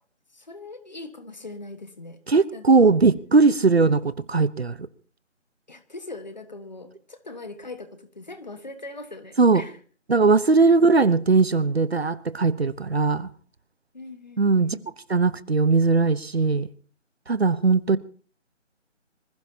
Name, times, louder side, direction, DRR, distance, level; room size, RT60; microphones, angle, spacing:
voice 1, 0.3-2.2 2.5-2.9 5.7-9.8 10.6-10.7 13.9-14.8, left 2 dB, 35° left, 1.4 m, -41 dB
voice 2, 2.3-4.9 9.4-9.6 10.1-13.3 14.4-14.8 15.1-16.7 17.3-18.0, right 4 dB, 55° right, 0.9 m, -19 dB
25.5 x 15.5 x 2.8 m
figure-of-eight pair, 175°, 37 cm